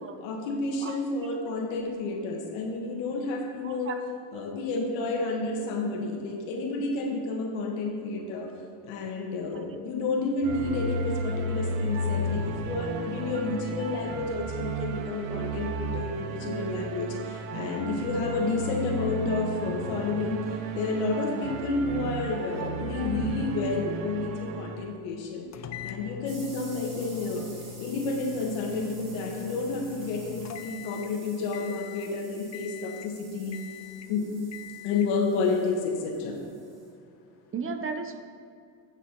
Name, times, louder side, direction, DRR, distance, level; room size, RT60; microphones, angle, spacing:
voice 1, 0.2-4.0 4.3-8.5 8.8-20.4 20.7-25.5 25.8-27.5 27.8-33.6 34.1-34.2 34.8-36.4, left 3 dB, 80° left, 1 dB, 1.4 m, -30 dB
voice 2, 3.6-4.0 9.5-9.6 13.3-13.4 37.5-38.2, right 5 dB, 30° right, 7 dB, 0.7 m, -35 dB
sound 1, 10.4-24.9, right 2 dB, 75° right, 0.8 m, -33 dB
sound 2, 25.5-31.2 31.5-32.1 32.5-33.2 33.5-34.1 34.5-35.1, left 11 dB, 35° left, 0.5 m, -43 dB
sound 3, 26.3-36.9, right 3 dB, 50° right, 1.9 m, -50 dB
8.0 x 7.0 x 3.8 m, 2.5 s
supercardioid pair, 95°, 46 cm